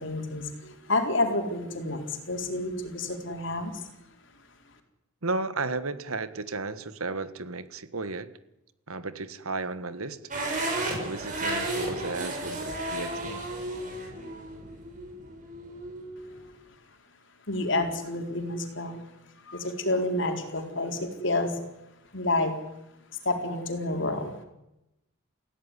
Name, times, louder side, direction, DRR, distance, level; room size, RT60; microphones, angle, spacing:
voice 1, 0.0-3.9 17.5-19.0 19.4-21.6 22.1-22.5 23.2-24.3, left 2 dB, 55° left, 5 dB, 4.2 m, -29 dB
voice 2, 5.2-8.3 8.9-10.2 10.9-13.5, right 3 dB, 80° right, 13 dB, 1.6 m, -34 dB
sound 1, 10.3-16.4, right 1 dB, 35° right, 7.0 m, -33 dB
28.5 x 16.5 x 9.9 m, 0.93 s
head